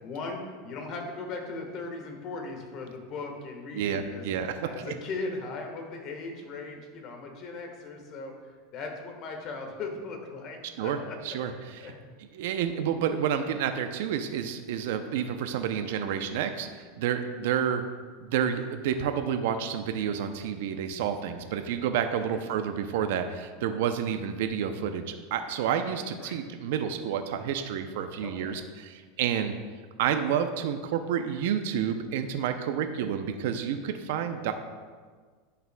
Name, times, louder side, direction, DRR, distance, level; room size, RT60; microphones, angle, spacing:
voice 1, 0.0-4.3 4.6-8.3 8.7-11.2 11.5-12.0 22.3-22.4 26.2-26.4 28.2-28.6, left 3 dB, 45° left, 3 dB, 1.3 m, -38 dB
voice 2, 3.7-4.5 4.9-5.0 10.8-11.0 11.2-11.9 12.3-17.8 18.2-29.5 30.0-34.5, right 8 dB, 75° right, 8 dB, 0.5 m, -29 dB
11.0 x 5.7 x 2.2 m, 1.5 s
supercardioid pair, 130°, 0 cm